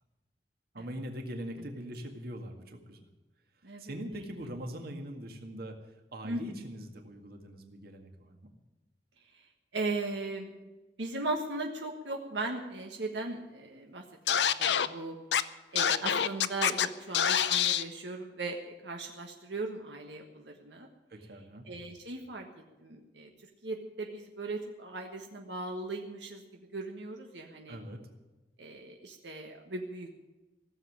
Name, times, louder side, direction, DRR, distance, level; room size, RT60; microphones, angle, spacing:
voice 1, 0.7-3.1 3.8-5.7 6.1-8.5 21.1-21.6 27.7-28.0, equal, 60° right, 4 dB, 2.0 m, -42 dB
voice 2, 3.6-3.9 6.2-6.7 9.3-9.4 9.7-10.5 11.0-15.1 15.7-20.9 21.6-22.5 22.8-26.4 26.7-27.8 28.6-30.2, right 2 dB, 85° right, 2 dB, 1.5 m, -38 dB
Scratching (performance technique), 14.3-14.9 15.3-15.4 15.8-16.9 17.1-17.8, left 9 dB, 75° left, 0.6 m, -26 dB
16.5 x 7.5 x 9.8 m, 1.1 s
head